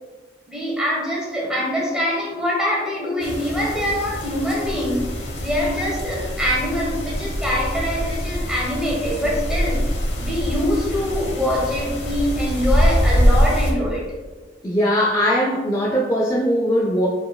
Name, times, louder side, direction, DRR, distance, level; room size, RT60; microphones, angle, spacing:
voice 1, 0.5-5.1 5.4-9.8 10.2-14.0, left 1 dB, 5° right, -5 dB, 1.3 m, -24 dB
sound 1, 3.2-13.7, equal, 75° left, 0.9 m, -23 dB
voice 2, 14.6-17.1, equal, 20° left, -2 dB, 0.4 m, -20 dB
4.5 x 4.3 x 2.2 m, 1.3 s
head